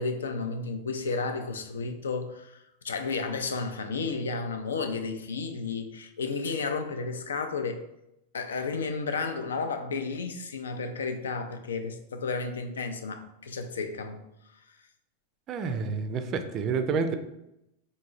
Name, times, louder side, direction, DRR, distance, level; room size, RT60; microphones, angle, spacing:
voice 1, 0.0-7.8 8.3-14.2, left 4 dB, 65° left, 0.4 m, -32 dB
voice 2, 15.5-17.2, right 5 dB, 35° right, 0.4 m, -29 dB
3.9 x 3.7 x 2.5 m
figure-of-eight pair, 90°, 0 cm